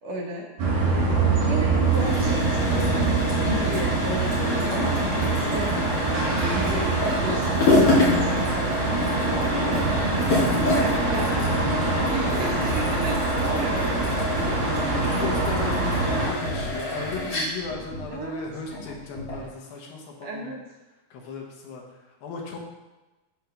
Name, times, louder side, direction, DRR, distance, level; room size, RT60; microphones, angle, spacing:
voice 1, 0.0-0.4 1.1-8.9 9.9-13.9 14.3-15.2 18.1-18.4 20.2-20.6, right 1 dB, 65° right, -3 dB, 1.7 m, -34 dB
sound 1, 0.6-16.3, right 3 dB, 85° right, 5.1 m, -24 dB
voice 2, 0.9-1.3 11.4-13.2 14.9-20.5 21.1-21.8 22.2-22.7, left 4 dB, 70° left, -1 dB, 3.0 m, -36 dB
sound 2, 1.8-19.5, left 1 dB, 45° left, 3.6 m, -28 dB
13.0 x 4.6 x 3.5 m, 1.1 s
omnidirectional pair, 4.5 m